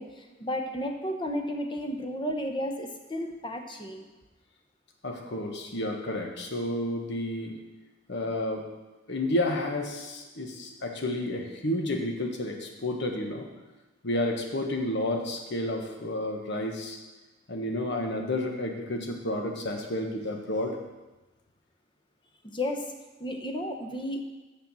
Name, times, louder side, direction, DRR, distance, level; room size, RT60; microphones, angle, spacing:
voice 1, 0.0-4.0 22.5-22.9 23.2-24.2, left 1 dB, 25° left, 4 dB, 1.0 m, -33 dB
voice 2, 5.0-7.6 8.1-8.7 9.1-13.5 14.0-17.0 17.5-20.8, left 1 dB, 60° left, 3 dB, 1.3 m, -31 dB
6.7 x 6.7 x 7.5 m, 1.1 s
head